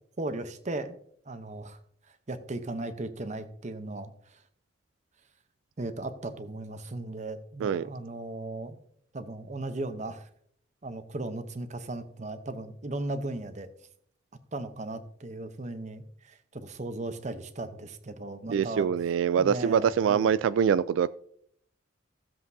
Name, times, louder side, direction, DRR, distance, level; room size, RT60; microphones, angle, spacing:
voice 1, 0.2-1.0 1.3-1.8 2.3-4.4 5.8-8.8 9.1-10.3 10.8-13.7 14.5-18.9 19.4-20.3, right 2 dB, 40° right, 0.8 m, -37 dB
voice 2, 18.5-21.1, right 7 dB, 85° right, 0.3 m, -24 dB
15.5 x 7.5 x 2.7 m
head